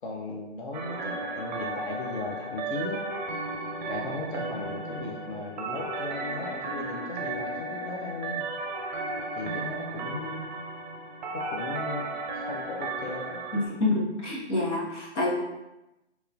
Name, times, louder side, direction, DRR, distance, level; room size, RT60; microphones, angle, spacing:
voice 1, 0.0-3.0 3.9-8.5 9.3-10.6 11.3-13.4, left 3 dB, 45° left, -1 dB, 0.5 m, -37 dB
sound 1, 0.7-13.7, right 2 dB, 40° right, 0.5 m, -34 dB
voice 2, 13.5-15.3, left 2 dB, 85° left, -4 dB, 1.1 m, -27 dB
3.0 x 2.9 x 2.3 m, 0.96 s
figure-of-eight pair, 130°, 35 cm